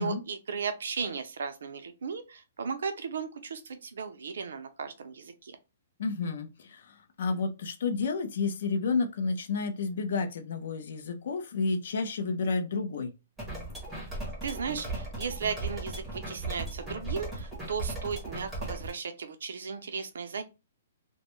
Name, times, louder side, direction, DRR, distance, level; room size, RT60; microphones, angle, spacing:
voice 1, 0.0-5.6 14.4-20.4, right 5 dB, 70° right, 0.5 m, -36 dB
voice 2, 6.0-13.2, left 4 dB, 50° left, 0.4 m, -31 dB
sound 1, 13.4-18.9, right 2 dB, ahead, 0.7 m, -37 dB
2.1 x 2.0 x 3.0 m
hypercardioid pair, 180°, 0 cm